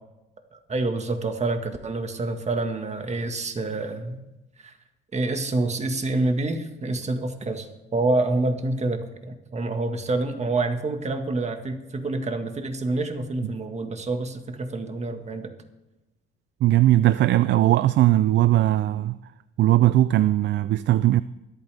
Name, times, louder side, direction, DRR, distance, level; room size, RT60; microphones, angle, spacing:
voice 1, 0.5-4.2 4.6-4.7 5.1-15.5, right 2 dB, 35° right, 1.8 m, -27 dB
voice 2, 16.6-19.2 19.6-21.2, right 14 dB, 65° right, 0.4 m, -19 dB
23.5 x 8.9 x 3.5 m
cardioid pair, 90°, 20 cm